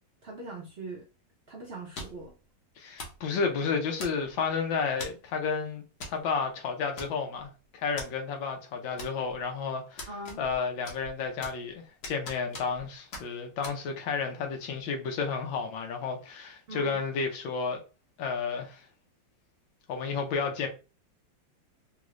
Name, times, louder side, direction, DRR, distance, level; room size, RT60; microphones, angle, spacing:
voice 1, 0.2-1.1 1.5-2.3 10.1-10.4 16.7-17.0, right 2 dB, 75° right, 0.5 m, -41 dB
sound 1, 1.9-2.3 3.0-3.2 4.0-4.4 5.0-5.3 6.0-6.2 6.5-6.6 7.0-7.4 8.0-8.1 9.0-9.4 10.0-10.6 10.8-11.7 12.0-12.8 13.1-13.3 13.6-13.8, left 2 dB, 65° left, 1.6 m, -41 dB
voice 2, 2.8-10.1 10.4-17.8 18.2-18.8 19.9-20.7, left 5 dB, 90° left, 1.5 m, -32 dB
3.6 x 2.5 x 3.0 m
omnidirectional pair, 2.0 m